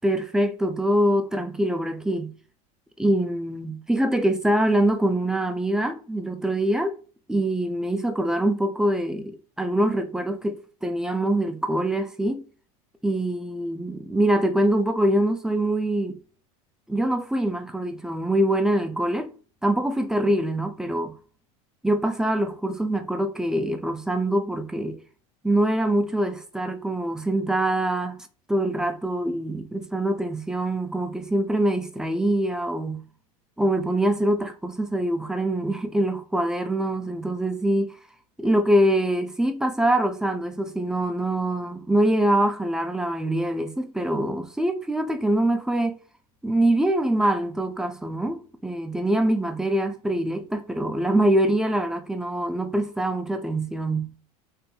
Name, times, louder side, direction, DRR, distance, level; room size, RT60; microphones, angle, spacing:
voice 1, 0.0-2.3 3.0-7.0 7.3-12.4 13.0-16.2 16.9-19.3 19.6-21.1 21.8-25.0 25.4-28.2 28.5-33.0 33.6-37.9 38.4-46.0 46.4-54.1, right 1 dB, 5° right, 0.4 m, -24 dB
2.6 x 2.6 x 2.2 m
hypercardioid pair, 100°, 19 cm